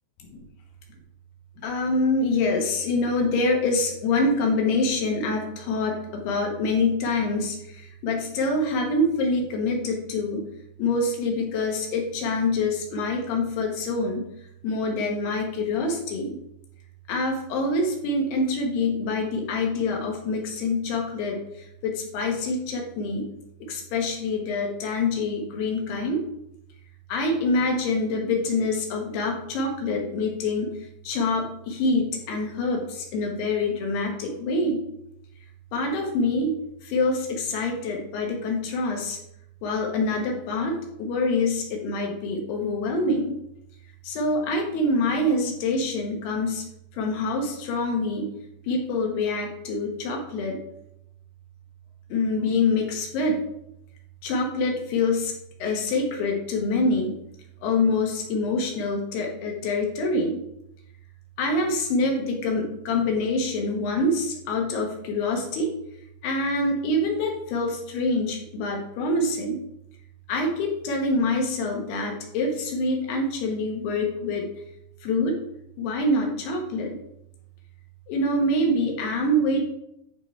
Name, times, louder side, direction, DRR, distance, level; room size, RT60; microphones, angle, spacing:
voice 1, 1.6-10.4 10.8-14.3 14.6-16.4 17.1-23.3 23.6-26.2 27.1-34.8 35.7-36.5 36.8-39.2 39.6-43.4 44.0-46.6 46.9-48.3 48.6-50.6 52.1-53.4 54.2-55.3 55.6-57.2 57.6-60.4 61.4-65.7 66.2-69.6 70.3-74.5 75.0-75.4 75.8-77.0 78.1-79.7, left 2 dB, 70° left, 1 dB, 3.0 m, -25 dB
11.5 x 3.9 x 4.4 m, 0.81 s
omnidirectional pair, 5.0 m